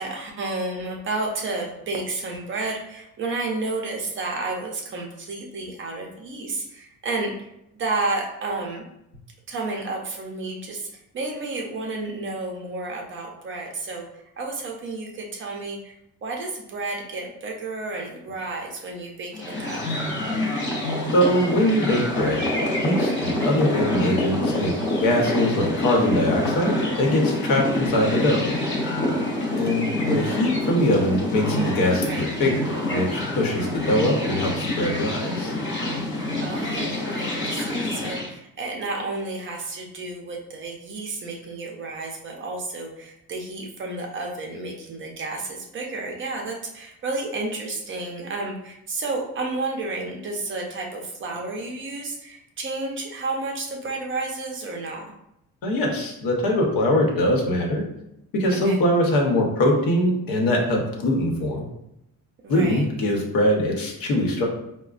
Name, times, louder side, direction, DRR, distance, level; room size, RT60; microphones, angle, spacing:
voice 1, 0.0-7.5 7.7-8.9 9.5-10.9 11.1-14.1 14.4-15.9 16.2-20.0 23.4-23.7 32.0-32.2 33.5-33.8 36.4-55.0 58.6-58.8 62.4-62.9, right 3 dB, 35° right, 0 dB, 0.5 m, -31 dB
sound 1, 19.3-38.3, left 1 dB, 35° left, 0.8 m, -26 dB
voice 2, 21.1-22.4 22.8-24.7 25.0-28.4 29.6-35.5 55.6-57.8 58.3-61.6 62.5-64.5, left 1 dB, 80° left, 0 dB, 0.9 m, -22 dB
4.8 x 2.1 x 2.4 m, 0.83 s
cardioid pair, 170°, 34 cm